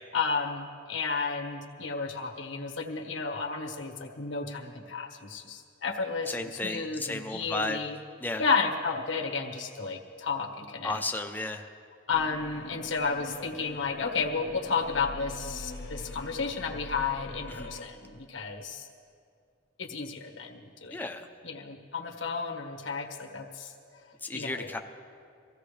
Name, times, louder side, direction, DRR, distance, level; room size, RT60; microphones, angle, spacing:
voice 1, 0.1-8.0 8.4-11.0 12.1-18.9 19.8-21.1 21.4-24.0 24.3-24.7, left 5 dB, 90° left, 3 dB, 1.4 m, -32 dB
voice 2, 6.3-7.8 8.2-8.4 10.8-11.7 17.6-17.7 20.9-21.3 24.2-24.8, left 2 dB, 10° left, 4 dB, 0.7 m, -33 dB
sound 1, 12.1-17.9, left 2 dB, 70° left, 1.2 m, -43 dB
23.5 x 16.0 x 3.3 m, 2.4 s
head